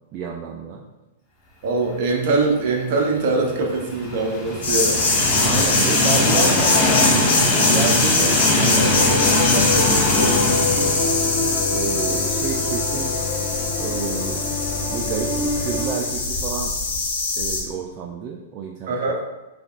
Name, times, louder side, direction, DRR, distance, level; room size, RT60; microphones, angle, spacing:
voice 1, 0.1-0.8 5.4-11.0 11.7-13.2 13.8-14.4 14.9-16.7 17.4-19.0, right 6 dB, 35° right, 1 dB, 0.4 m, -30 dB
voice 2, 1.6-5.0 6.3-6.5 18.9-19.2, right 3 dB, 55° right, 0 dB, 0.9 m, -22 dB
Train, 2.9-13.0 13.4-13.5 14.6-14.7, left 1 dB, 15° left, 1.2 m, -22 dB
sound 1, 4.6-17.6, left 3 dB, 65° left, 1.2 m, -22 dB
sound 2, 8.8-15.9, left 3 dB, 40° left, 1.2 m, -26 dB
5.1 x 3.4 x 2.4 m, 1.0 s
figure-of-eight pair, 105°, 0 cm